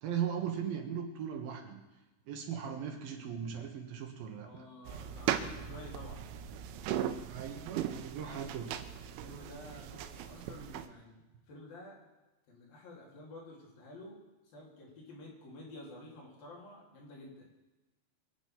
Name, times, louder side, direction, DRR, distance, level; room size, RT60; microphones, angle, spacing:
voice 1, 0.0-1.8 2.3-4.6 7.3-8.7, right 8 dB, 65° right, 3 dB, 2.7 m, -38 dB
voice 2, 4.4-6.2 8.2-8.5 9.2-11.2 11.5-12.0 12.5-14.2 14.5-17.5, left 1 dB, 50° left, -3 dB, 5.0 m, -50 dB
sound 1, 4.9-10.9, right 10 dB, 85° right, 3.3 m, -38 dB
23.5 x 8.2 x 6.0 m, 1.1 s
omnidirectional pair, 5.5 m